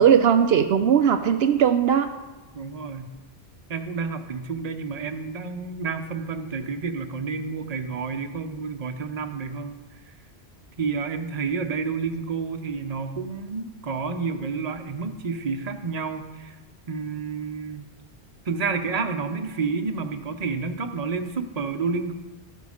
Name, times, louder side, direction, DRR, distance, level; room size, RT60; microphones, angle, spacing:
voice 1, 0.0-2.1, right 8 dB, 75° right, 8 dB, 0.8 m, -18 dB
voice 2, 2.5-3.1 3.7-9.7 10.1-10.2 10.8-16.6 16.9-17.9 18.5-22.1, right 5 dB, 40° right, 6 dB, 0.9 m, -30 dB
13.0 x 9.5 x 5.0 m, 1.2 s
omnidirectional pair, 1.1 m